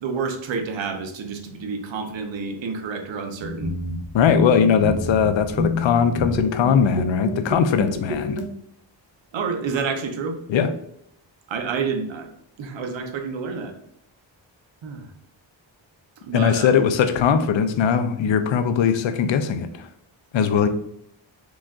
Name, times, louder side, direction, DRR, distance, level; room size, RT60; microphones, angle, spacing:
voice 1, 0.0-3.7 9.3-10.4 11.5-12.3 12.6-13.7 14.8-15.1 16.2-16.7 20.3-20.4, right 5 dB, 70° right, 5 dB, 0.8 m, -29 dB
sound 1, 3.4-8.5, left 2 dB, 35° right, 0.7 m, -28 dB
voice 2, 4.1-8.4 10.5-10.7 16.3-19.9 20.3-20.7, left 7 dB, 75° left, 10 dB, 0.6 m, -20 dB
4.9 x 2.4 x 3.6 m, 0.72 s
wide cardioid pair, 115°, 46 cm